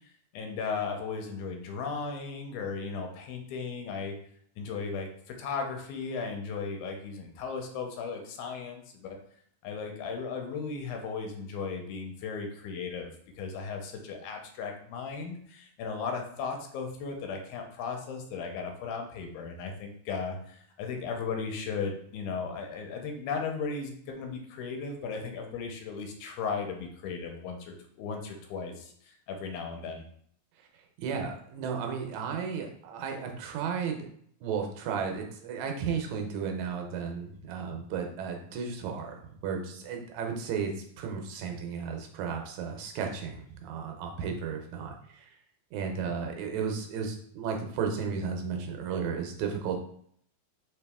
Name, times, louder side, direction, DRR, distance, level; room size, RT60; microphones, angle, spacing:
voice 1, 0.3-4.2 4.6-9.2 9.6-13.1 13.4-30.0, left 5 dB, 85° left, 3 dB, 2.1 m, -36 dB
voice 2, 31.0-34.1 34.4-45.3 45.7-49.8, right 6 dB, 75° right, 3 dB, 1.9 m, -34 dB
4.7 x 2.9 x 3.4 m, 0.64 s
omnidirectional pair, 3.5 m